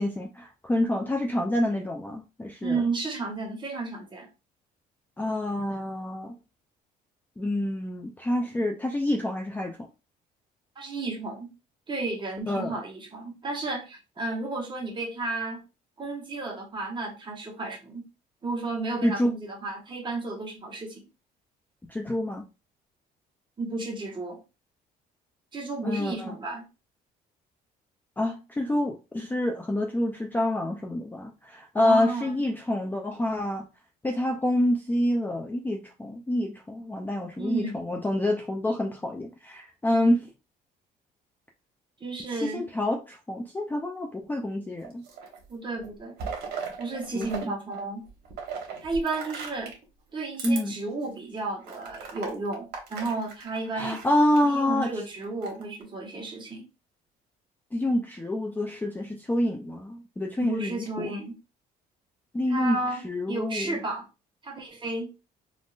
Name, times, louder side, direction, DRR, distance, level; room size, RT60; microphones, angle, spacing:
voice 1, 0.0-2.8 5.2-6.3 7.4-9.9 12.5-12.8 19.0-19.3 21.9-22.5 25.8-26.4 28.2-33.7 34.0-40.3 42.4-45.0 47.1-47.6 50.4-50.8 53.7-54.9 57.7-61.1 62.3-62.8 63.0-63.8, left 1 dB, 10° left, 2 dB, 0.4 m, -27 dB
voice 2, 2.6-4.3 10.8-11.5 11.9-15.6 16.0-18.1 18.4-21.0 23.6-24.4 25.5-26.7 31.8-32.5 37.4-37.8 42.0-42.6 45.5-46.2 46.8-48.1 48.8-49.7 50.1-54.0 54.4-56.7 60.4-61.4 62.5-64.1 64.4-65.1, right 3 dB, 30° right, 0 dB, 1.1 m, -32 dB
sound 1, 44.8-45.5 45.8-47.5 47.7-49.8 50.3-50.6 51.1-51.2 51.6-54.4 55.2-55.8, right 6 dB, 70° right, 1.1 m, -38 dB
3.5 x 2.4 x 2.4 m, 0.29 s
cardioid pair, 110°, 17 cm